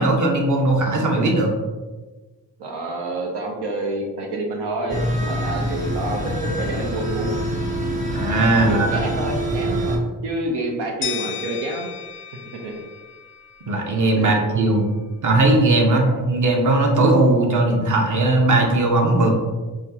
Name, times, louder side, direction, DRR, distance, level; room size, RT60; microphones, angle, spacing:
voice 1, 0.0-1.5 8.1-9.0 13.7-14.8 15.2-19.3, right 2 dB, 50° right, 1 dB, 0.9 m, -18 dB
voice 2, 2.6-7.3 8.7-11.9 12.5-12.8 14.2-14.4, right 2 dB, 90° right, 0 dB, 0.7 m, -28 dB
sound 1, 4.9-10.0, equal, 20° right, 0.8 m, -25 dB
sound 2, 11.0-13.9, left 9 dB, 30° left, 0.4 m, -34 dB
5.4 x 2.4 x 2.7 m, 1.3 s
cardioid pair, 60°, 39 cm